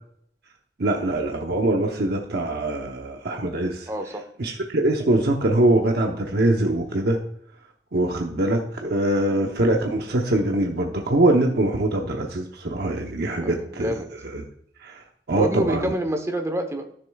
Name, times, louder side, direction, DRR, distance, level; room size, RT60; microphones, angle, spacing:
voice 1, 0.8-3.9 4.4-7.2 7.9-13.9 14.3-14.4 14.8-15.0 15.3-15.9, right 1 dB, 65° right, 2 dB, 0.9 m, -23 dB
voice 2, 3.9-4.2 9.3-9.4 13.4-14.1 15.3-16.9, right 1 dB, 15° right, 6 dB, 0.9 m, -27 dB
12.0 x 6.8 x 2.3 m, 0.66 s
head